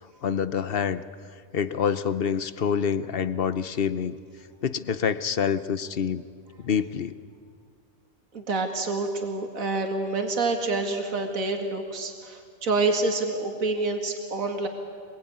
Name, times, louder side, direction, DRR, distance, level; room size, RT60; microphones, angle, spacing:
voice 1, 0.2-1.0 1.5-4.1 4.6-6.2 6.6-7.1, left 7 dB, 50° left, 14 dB, 1.0 m, -26 dB
voice 2, 8.3-14.7, right 3 dB, 70° right, 3 dB, 2.6 m, -27 dB
26.0 x 22.0 x 9.6 m, 2.2 s
omnidirectional pair, 1.5 m